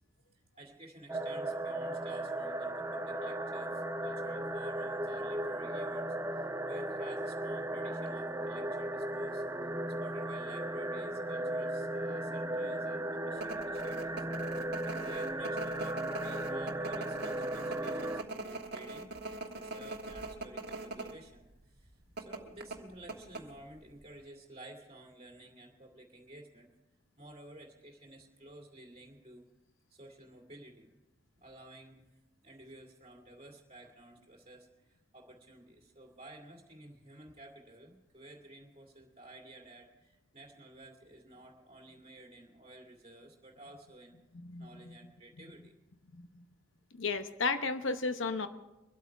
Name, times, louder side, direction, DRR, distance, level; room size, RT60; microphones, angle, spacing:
voice 1, 0.3-9.4 10.0-14.2 14.6-19.2 19.5-26.7 27.2-29.4 29.9-30.9 31.4-32.0 32.4-44.2 44.6-45.7, right 1 dB, 30° right, 0 dB, 2.3 m, -53 dB
sound 1, 1.1-18.2, right 1 dB, 15° right, 0.5 m, -36 dB
sound 2, 13.4-21.1 21.4-21.5 22.2-23.8 24.1-24.2, right 2 dB, 50° right, 1.4 m, -42 dB
voice 2, 44.3-45.0 46.1-46.3 46.9-48.5, left 4 dB, 65° left, 9 dB, 0.8 m, -34 dB
24.5 x 8.5 x 4.6 m, 1.0 s
head